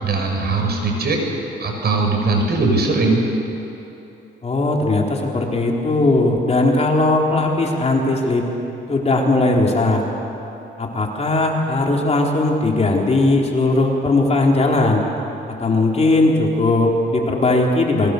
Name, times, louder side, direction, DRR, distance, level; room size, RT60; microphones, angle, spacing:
voice 1, 0.0-1.2 1.6-3.2, right 3 dB, 55° right, 2 dB, 5.7 m, -19 dB
voice 2, 4.4-8.4 8.9-10.0 10.8-15.0 15.6-18.1, left 2 dB, 35° left, -1 dB, 4.0 m, -18 dB
26.5 x 22.0 x 6.9 m, 3.0 s
cardioid pair, 90°, 20 cm